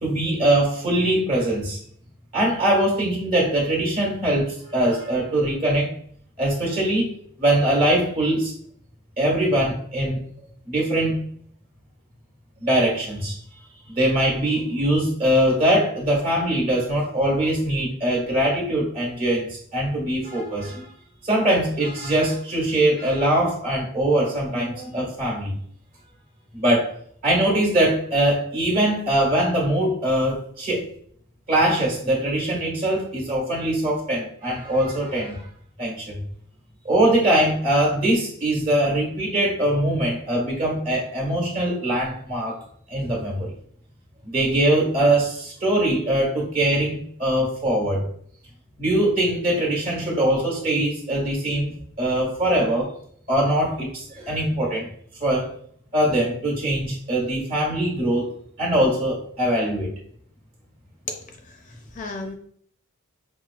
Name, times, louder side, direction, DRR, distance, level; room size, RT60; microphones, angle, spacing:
voice 1, 0.0-1.8 2.3-5.9 6.4-7.1 7.4-8.5 9.2-10.2 10.7-11.2 12.6-13.4 13.9-20.9 21.2-25.5 26.5-26.9 27.2-30.8 31.5-35.5 35.8-36.2 36.8-42.6 42.9-43.5 44.2-48.0 48.8-52.9 53.3-54.9 55.2-55.5 55.9-58.3 58.6-59.9, right 1 dB, 40° right, -2 dB, 1.5 m, -22 dB
voice 2, 61.5-62.4, left 3 dB, 35° left, 4 dB, 0.4 m, -34 dB
5.7 x 2.3 x 2.3 m, 0.62 s
head